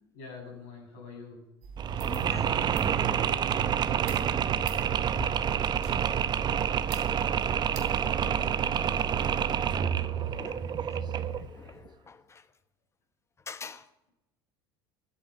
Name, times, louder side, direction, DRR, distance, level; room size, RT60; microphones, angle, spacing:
voice 1, 0.1-1.4 3.8-5.4 7.6-9.3 9.8-11.1, left 3 dB, 65° left, 0 dB, 7.2 m, -48 dB
sound 1, 1.6-8.5, right 4 dB, 60° right, 3.3 m, -43 dB
Mechanisms, 1.8-11.5, right 8 dB, 35° right, 0.7 m, -28 dB
voice 2, 1.9-3.3 10.4-10.6 11.2-12.4 13.5-13.9, left 5 dB, 20° left, 11 dB, 1.2 m, -44 dB
14.5 x 8.9 x 8.3 m, 0.94 s
hypercardioid pair, 75°, 13 cm